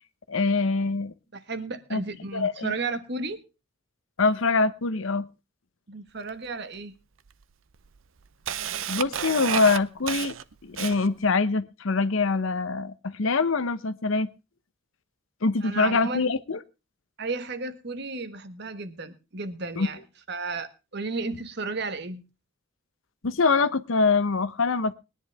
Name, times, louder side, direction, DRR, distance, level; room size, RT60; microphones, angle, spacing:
voice 1, 0.3-1.1 1.9-2.0 2.3-2.7 4.2-5.3 8.9-10.3 10.6-14.3 15.4-16.6 19.8-19.9 23.2-24.9, left 4 dB, 70° left, 0.8 m, -24 dB
voice 2, 1.3-3.4 5.9-6.9 15.6-16.2 17.2-20.0 20.3-22.2, right 3 dB, 50° right, 1.3 m, -33 dB
Camera, 6.3-6.4 7.3-7.4 7.8-11.3, right 9 dB, 70° right, 0.6 m, -31 dB
21.0 x 10.5 x 3.4 m
head